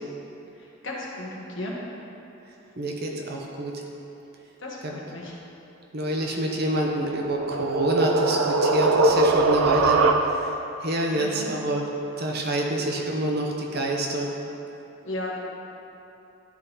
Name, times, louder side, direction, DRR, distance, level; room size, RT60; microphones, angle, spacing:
voice 1, 0.5-1.8 4.6-5.4 11.1-11.5 15.0-15.4, left 1 dB, 60° left, -4 dB, 1.3 m, -35 dB
voice 2, 2.8-3.7 4.8-4.9 5.9-10.0 10.8-11.9 12.2-14.3, right 1 dB, 50° right, 0 dB, 0.8 m, -27 dB
sound 1, 6.9-10.7, right 3 dB, 85° right, 0.4 m, -21 dB
11.5 x 3.9 x 4.0 m, 2.9 s
head